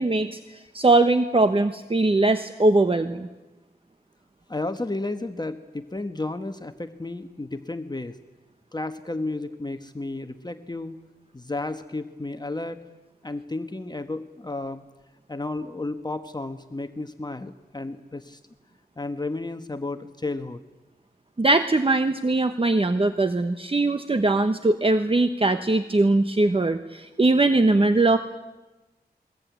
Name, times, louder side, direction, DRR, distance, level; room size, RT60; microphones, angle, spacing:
voice 1, 0.0-0.4 0.7-3.3 21.4-28.2, right 2 dB, 35° right, 9 dB, 1.1 m, -21 dB
voice 2, 4.5-8.2 8.7-10.9 11.3-12.8 13.2-14.8 15.3-18.4 19.0-20.6, left 2 dB, 25° left, 8 dB, 1.3 m, -32 dB
22.0 x 21.0 x 9.4 m, 1.1 s
wide cardioid pair, 80°, 17 cm